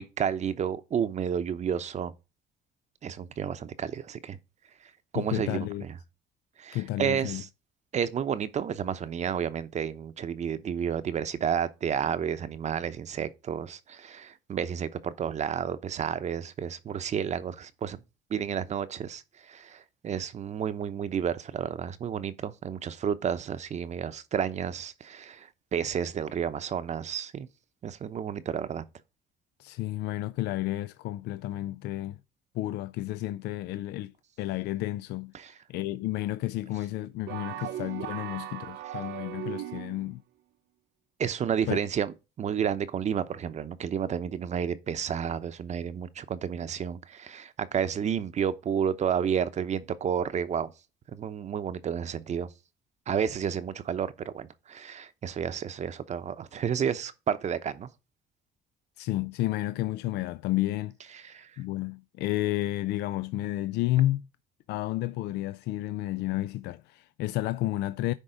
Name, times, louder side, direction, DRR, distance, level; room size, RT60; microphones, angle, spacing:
voice 1, 0.0-2.1 3.0-4.4 5.1-5.9 6.6-7.5 7.9-18.0 18.3-27.5 27.8-28.8 35.3-35.5 41.2-50.7 51.1-52.5 53.1-57.9 61.2-61.5, right 8 dB, 45° right, 0.9 m, -31 dB
voice 2, 5.1-5.8 6.7-7.4 29.6-32.2 32.5-34.1 34.4-35.3 35.7-40.2 41.7-41.8 59.0-61.2 61.6-64.2 64.7-68.1, left 16 dB, 80° left, 0.4 m, -31 dB
sound 1, 37.3-40.2, right 13 dB, 75° right, 0.4 m, -38 dB
10.0 x 3.7 x 5.0 m
cardioid pair, 110°, 17 cm